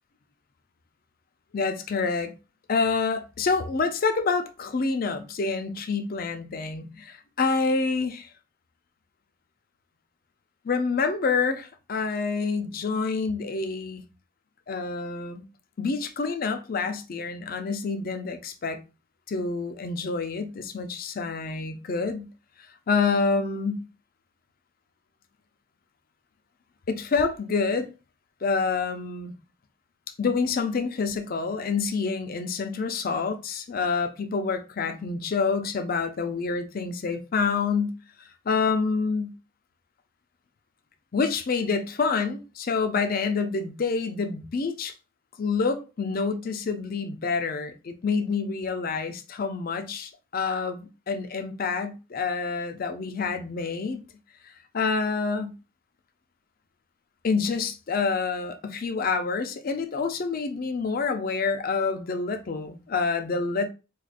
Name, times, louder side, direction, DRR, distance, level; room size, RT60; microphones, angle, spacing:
voice 1, 1.5-2.3 2.7-8.3 10.6-14.0 14.7-15.4 15.8-18.8 19.3-22.3 22.9-23.8 26.9-27.9 28.4-29.3 30.2-38.0 38.5-39.3 41.1-44.9 45.4-54.0 54.4-55.5 57.2-63.7, left 4 dB, 50° left, 0.5 m, -27 dB
4.7 x 2.4 x 2.4 m
head